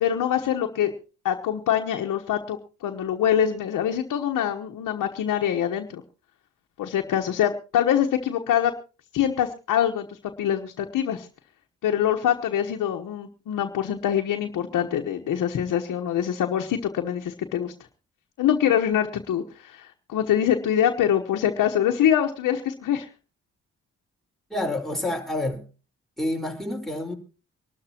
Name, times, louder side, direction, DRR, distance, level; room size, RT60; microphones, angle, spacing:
voice 1, 0.0-0.9 1.2-6.0 6.8-8.7 9.1-11.3 11.8-17.7 18.4-23.1, left 10 dB, 80° left, 1.2 m, -24 dB
voice 2, 24.5-25.6 26.2-27.1, left 1 dB, ahead, 4.6 m, -28 dB
25.0 x 12.5 x 2.9 m
supercardioid pair, 55°, 31 cm